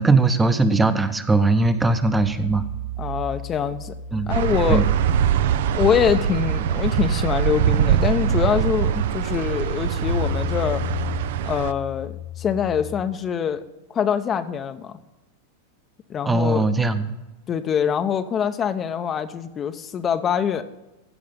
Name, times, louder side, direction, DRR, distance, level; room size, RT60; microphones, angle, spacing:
voice 1, 0.0-2.6 4.1-4.3 4.7-4.9 16.3-17.1, right 3 dB, 10° right, 10 dB, 0.8 m, -20 dB
sound 1, 1.6-13.0, left 2 dB, 90° left, 3.1 m, -33 dB
voice 2, 3.0-3.9 4.3-4.9 5.7-10.8 11.5-13.6 13.9-15.0 16.1-16.7 17.5-20.6, left 8 dB, 30° left, 9 dB, 0.6 m, -24 dB
sound 2, 4.3-11.7, right 10 dB, 70° right, 0.5 m, -23 dB
15.0 x 5.2 x 5.2 m, 1.0 s
hypercardioid pair, 110°, 0 cm